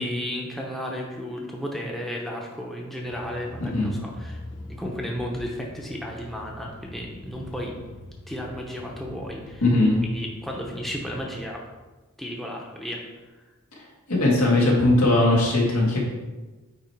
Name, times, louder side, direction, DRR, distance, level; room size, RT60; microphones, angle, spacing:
voice 1, 0.0-4.4 4.7-7.7 8.3-9.6 10.0-11.6 12.2-13.0, equal, ahead, -1 dB, 0.7 m, -33 dB
sound 1, 3.1-11.4, left 1 dB, 55° left, 0.8 m, -43 dB
voice 2, 9.6-10.0 14.1-16.0, left 2 dB, 85° left, -3 dB, 1.9 m, -19 dB
8.7 x 3.1 x 4.5 m, 1.2 s
head